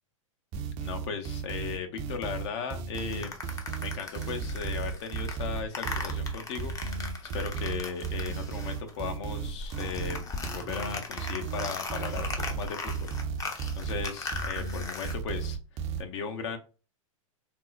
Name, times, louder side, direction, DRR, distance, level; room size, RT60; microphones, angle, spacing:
sound 1, 0.5-16.0, right 6 dB, 40° right, 0.5 m, -34 dB
voice 1, 0.8-3.4 3.8-7.0 7.3-13.2 13.8-15.6 16.0-16.6, left 6 dB, 55° left, 6 dB, 0.7 m, -37 dB
sound 2, 3.0-9.0 9.3-15.1, left 4 dB, 20° left, 0.5 m, -39 dB
3.7 x 2.0 x 2.4 m, 0.35 s
hypercardioid pair, 105°, 17 cm